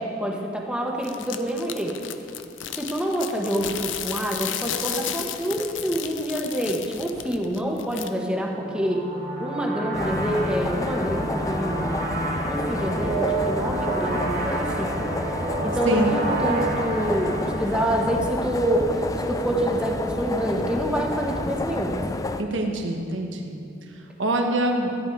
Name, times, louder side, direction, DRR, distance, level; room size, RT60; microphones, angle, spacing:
voice 1, 0.0-1.9 2.8-9.0 9.4-12.0 12.5-15.0 15.6-22.0, equal, 5° right, 0 dB, 1.2 m, -27 dB
sound 1, 1.0-8.1, left 9 dB, 80° left, 0.6 m, -34 dB
sound 2, 8.5-18.8, right 2 dB, 45° right, 1.3 m, -30 dB
sound 3, 9.9-22.4, left 2 dB, 20° left, 0.4 m, -30 dB
voice 2, 22.4-23.6 24.2-24.9, right 1 dB, 80° right, 3 dB, 1.3 m, -24 dB
14.0 x 10.5 x 4.6 m, 2.6 s
head